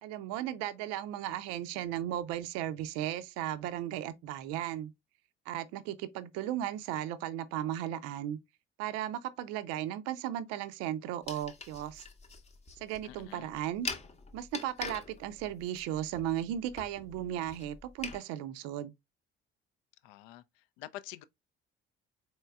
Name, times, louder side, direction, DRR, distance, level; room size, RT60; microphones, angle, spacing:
voice 1, 0.0-4.9 5.5-8.4 8.8-12.1 12.8-13.9 14.3-18.9, right 11 dB, 55° right, 0.5 m, -36 dB
sound 1, 11.2-18.2, left 5 dB, 20° left, 0.8 m, -44 dB
voice 2, 13.0-13.5 20.0-21.2, left 15 dB, 65° left, 0.4 m, -47 dB
4.2 x 3.1 x 2.2 m
figure-of-eight pair, 50°, 31 cm